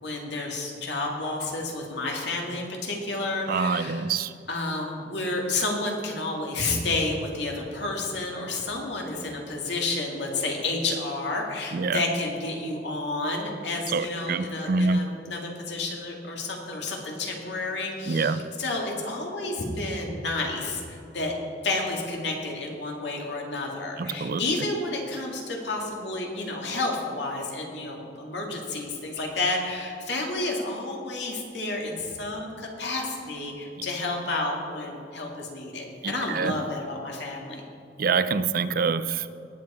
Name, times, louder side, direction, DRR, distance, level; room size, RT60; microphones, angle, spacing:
voice 1, 0.0-4.0 4.5-21.3 21.6-37.6, left 2 dB, 75° left, 0 dB, 2.3 m, -30 dB
voice 2, 3.5-4.3 11.7-12.0 13.9-15.0 18.1-18.5 24.0-24.4 36.0-36.6 38.0-39.3, right 4 dB, 55° right, 14 dB, 0.4 m, -26 dB
19.0 x 7.8 x 4.3 m, 2.5 s
head